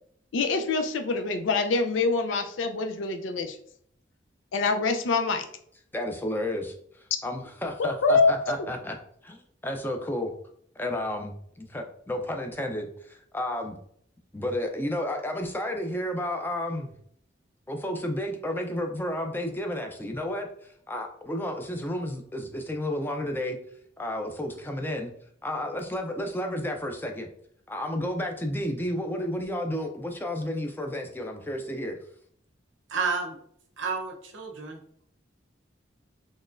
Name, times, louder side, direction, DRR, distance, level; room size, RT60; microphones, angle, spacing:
voice 1, 0.3-3.6 4.5-5.4 8.0-8.3, left 3 dB, 85° left, 7 dB, 0.5 m, -25 dB
voice 2, 5.9-9.0 9.2-10.3 10.8-13.8 14.3-16.9 17.7-25.1 25.4-27.3 27.7-32.0, left 1 dB, 10° left, 4 dB, 0.4 m, -32 dB
voice 3, 32.9-33.4 33.8-34.8, right 5 dB, 85° right, 4 dB, 0.7 m, -30 dB
4.1 x 3.1 x 2.5 m, 0.65 s
head